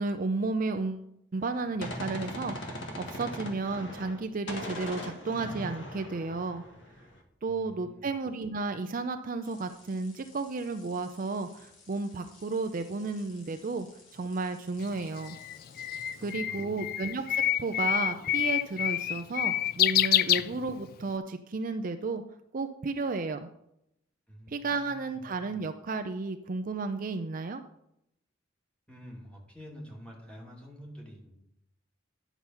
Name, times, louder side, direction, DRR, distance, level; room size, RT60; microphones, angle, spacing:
voice 1, 0.0-6.6 7.4-13.9 14.1-15.4 16.2-22.2 22.5-23.5 24.5-27.6, right 3 dB, 45° right, 8 dB, 0.5 m, -33 dB
Gunshot gunfire, 1.4-4.2 4.5-7.2, left 1 dB, 70° left, 1.6 m, -40 dB
voice 2, 7.5-8.1 16.2-16.9 20.3-20.5 24.3-25.2 28.9-31.3, equal, 5° left, -2 dB, 2.3 m, -48 dB
sound 1, 9.4-16.3, left 4 dB, 85° left, 2.9 m, -57 dB
Bird, 14.8-21.1, left 12 dB, 50° left, 0.3 m, -27 dB
10.5 x 6.0 x 5.5 m, 0.79 s
head